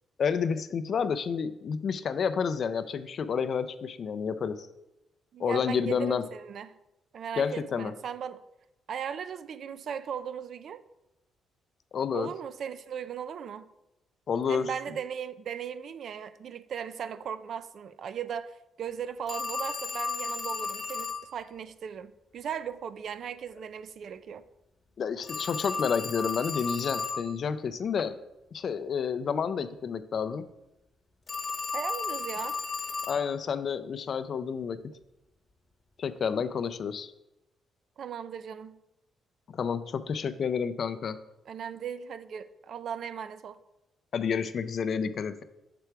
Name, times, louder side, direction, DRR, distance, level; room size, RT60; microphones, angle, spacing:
voice 1, 0.2-4.7 5.4-6.2 7.4-7.9 11.9-12.3 14.3-14.7 25.0-28.2 28.5-30.5 33.1-34.8 36.0-37.1 39.5-41.2 44.1-45.4, left 6 dB, 55° left, 0.4 m, -30 dB
voice 2, 5.3-6.7 7.1-8.4 8.9-10.8 12.1-13.7 14.5-24.4 31.7-32.6 38.0-38.8 41.5-43.6, right 8 dB, 60° right, 0.3 m, -37 dB
Telephone, 19.3-21.3 25.2-27.3 31.3-33.3, left 4 dB, 30° left, 0.9 m, -34 dB
6.8 x 3.4 x 4.6 m
cardioid pair, 90°, 0 cm